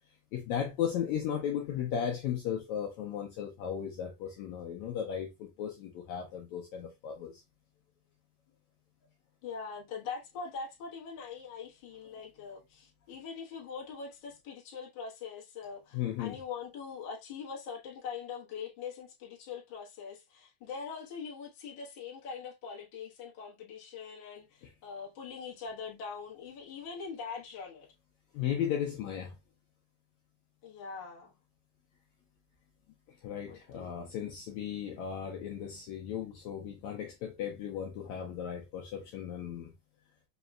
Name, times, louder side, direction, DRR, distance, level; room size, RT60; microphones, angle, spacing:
voice 1, 0.3-7.4 15.9-16.4 28.3-29.4 33.2-39.7, left 9 dB, 75° left, 1.8 m, -36 dB
voice 2, 9.4-27.9 30.6-31.3 33.5-33.9, left 5 dB, 55° left, 1.4 m, -42 dB
5.1 x 2.9 x 2.3 m
omnidirectional pair, 3.8 m